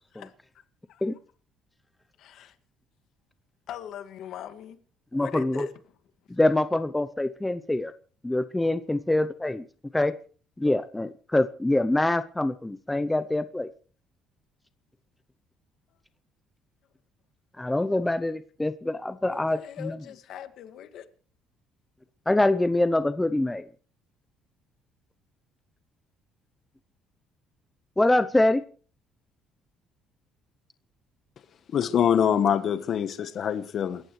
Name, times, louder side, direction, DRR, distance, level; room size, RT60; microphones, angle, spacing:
voice 1, 2.2-2.6 3.7-4.8 5.1-5.7 19.3-21.1, left 10 dB, 60° left, 1.9 m, -41 dB
voice 2, 5.1-5.7 6.3-7.9 8.2-9.6 9.9-10.1 10.6-13.7 17.6-20.0 22.3-23.6 28.0-28.6, left 1 dB, 10° left, 0.7 m, -25 dB
voice 3, 31.7-34.0, left 8 dB, 45° left, 1.2 m, -24 dB
29.0 x 14.5 x 3.2 m
cardioid pair, 150°, 0 cm